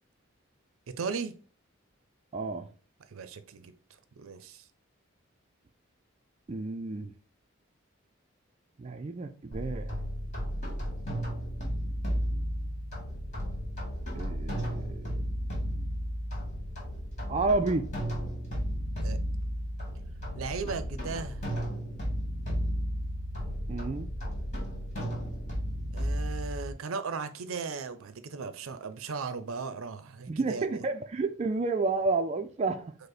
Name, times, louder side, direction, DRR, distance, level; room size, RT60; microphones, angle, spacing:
voice 1, 0.9-1.3 3.1-3.7 4.2-4.6 19.0-19.2 20.3-21.4 25.9-30.8, right 5 dB, 90° right, 0.5 m, -37 dB
voice 2, 2.3-2.7 6.5-7.1 8.8-10.0 14.1-15.2 17.3-17.9 23.7-24.1 30.3-33.0, right 3 dB, 30° right, 0.3 m, -30 dB
sound 1, 9.5-26.7, equal, 35° left, 2.0 m, -33 dB
5.2 x 2.1 x 4.0 m
head